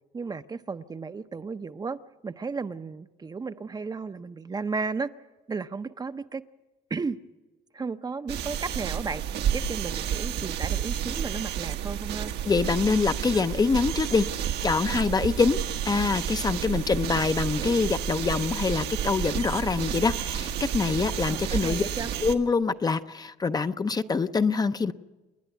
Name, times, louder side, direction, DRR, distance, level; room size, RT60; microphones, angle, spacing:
voice 1, 0.1-5.1 5.5-6.4 6.9-7.2 7.7-12.3 21.3-22.1, right 4 dB, 25° right, 11 dB, 0.6 m, -34 dB
sound 1, 8.3-22.3, right 9 dB, 75° right, 1.3 m, -31 dB
voice 2, 12.5-14.3 14.6-15.6 15.8-21.8 22.2-24.9, left 4 dB, 25° left, 10 dB, 0.6 m, -25 dB
28.5 x 10.5 x 9.3 m, 1.1 s
cardioid pair, 110°, 17 cm